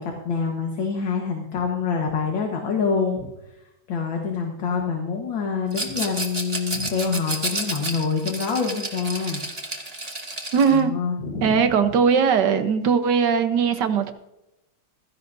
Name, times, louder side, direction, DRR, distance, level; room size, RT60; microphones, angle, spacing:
voice 1, 0.0-3.6 3.9-9.4 10.7-11.7, left 5 dB, 60° left, 1 dB, 2.1 m, -26 dB
Rattle, 5.7-10.8, right 2 dB, 20° right, 1.6 m, -31 dB
voice 2, 10.5-10.9 11.4-14.1, right 6 dB, 60° right, 9 dB, 1.4 m, -19 dB
16.0 x 15.0 x 2.7 m, 0.89 s
omnidirectional pair, 2.4 m